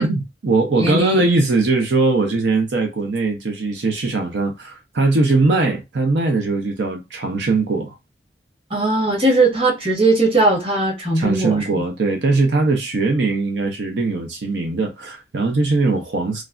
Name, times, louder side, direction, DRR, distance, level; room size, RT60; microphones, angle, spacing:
voice 1, 0.0-8.0 11.1-16.4, right 3 dB, 80° right, 0.6 m, -20 dB
voice 2, 0.8-1.2 8.7-11.6, right 2 dB, 30° right, 1.1 m, -18 dB
3.2 x 2.4 x 2.4 m
head